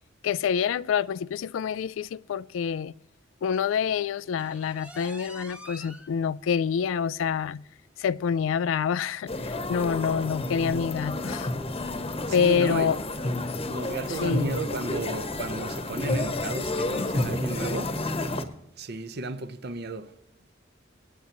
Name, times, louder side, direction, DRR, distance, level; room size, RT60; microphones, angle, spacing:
voice 1, 0.2-2.9 3.4-7.6 8.0-11.5 12.3-13.0 14.1-14.5, left 7 dB, 85° left, 0.3 m, -27 dB
sound 1, 4.4-6.1 6.5-6.6 7.1-7.2 7.6-7.7 8.6-8.7, equal, 5° right, 1.1 m, -45 dB
sound 2, 9.3-18.4, left 2 dB, 30° left, 1.0 m, -30 dB
voice 2, 12.3-12.9 13.7-17.9 18.8-20.1, right 3 dB, 55° right, 0.9 m, -34 dB
24.0 x 9.2 x 3.0 m
head